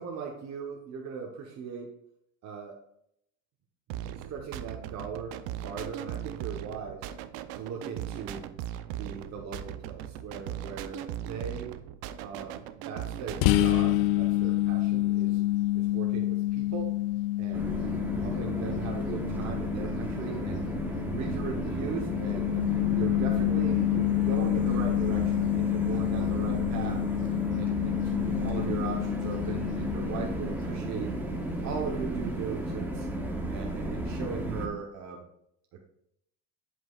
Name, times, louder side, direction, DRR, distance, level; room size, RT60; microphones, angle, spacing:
voice 1, 0.0-1.9 2.4-2.8 4.1-7.1 7.5-8.5 8.9-11.8 12.2-15.4 15.7-17.0 17.4-20.7 21.1-27.0 27.6-31.1 31.6-33.1 33.5-35.3 35.7-35.9, right 6 dB, 40° right, 0 dB, 1.0 m, -39 dB
sound 1, 3.9-13.9, right 11 dB, 70° right, 0.6 m, -38 dB
sound 2, 13.4-30.9, left 16 dB, 80° left, 0.6 m, -28 dB
sound 3, 17.5-34.7, right 1 dB, 5° right, 0.8 m, -34 dB
8.0 x 7.8 x 2.4 m, 0.74 s
cardioid pair, 145°, 41 cm